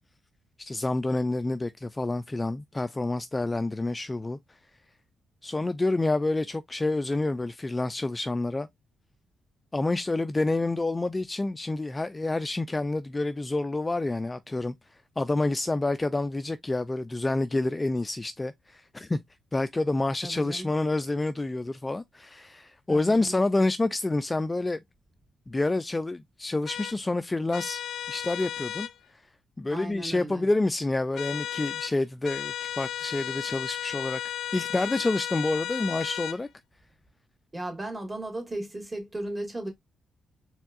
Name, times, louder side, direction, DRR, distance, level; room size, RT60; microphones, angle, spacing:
voice 1, 0.6-4.4 5.4-8.7 9.7-14.7 15.2-19.2 19.5-24.8 25.5-27.8 28.1-28.9 29.1-29.2 29.6-34.2 34.5-36.5, left 2 dB, 20° left, 0.3 m, -28 dB
voice 2, 20.2-20.7 22.9-23.4 29.7-30.5 37.5-39.7, right 1 dB, 20° right, 1.9 m, -36 dB
sound 1, 26.7-27.0 27.5-28.9 31.1-31.9 32.2-36.4, left 11 dB, 80° left, 0.5 m, -34 dB
4.5 x 3.5 x 2.4 m
cardioid pair, 100°, 0 cm